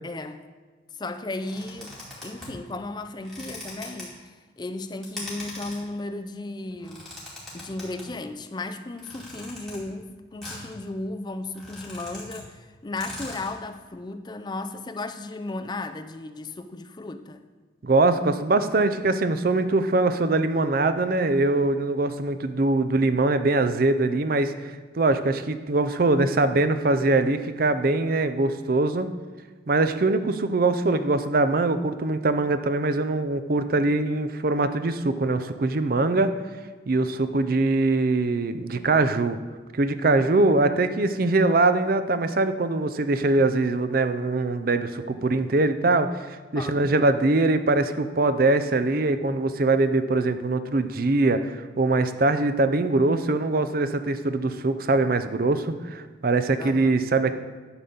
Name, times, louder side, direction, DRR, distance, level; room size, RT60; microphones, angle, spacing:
voice 1, 0.0-0.4 1.0-4.3 4.6-7.1 7.5-17.4 46.5-46.8 56.6-57.0, left 2 dB, 20° left, 8 dB, 0.4 m, -35 dB
sound 1, 1.4-2.6 3.2-4.0 5.0-5.8 6.7-8.1 9.0-9.8 10.4-10.7 11.1-11.2 11.4-12.4 12.7-12.8 13.0-13.5, left 1 dB, 5° left, 2.4 m, -40 dB
voice 2, 17.8-29.1 29.7-36.3 36.9-39.4 39.7-57.3, right 2 dB, 50° right, 10 dB, 0.5 m, -22 dB
11.0 x 4.0 x 6.9 m, 1.4 s
head